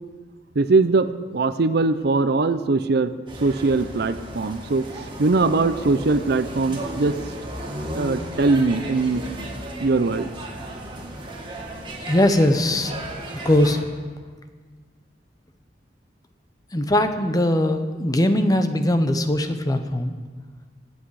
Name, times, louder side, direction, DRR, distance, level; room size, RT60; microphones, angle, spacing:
voice 1, 0.6-3.1 3.4-7.1 7.9-9.2 9.8-10.3, right 3 dB, 65° right, 12 dB, 0.6 m, -21 dB
sound 1, 3.3-13.8, right 1 dB, 30° right, 2.1 m, -35 dB
voice 2, 12.0-12.9 13.3-13.8 16.7-20.1, left 1 dB, 20° left, 8 dB, 0.9 m, -20 dB
24.5 x 8.1 x 4.8 m, 1.5 s
head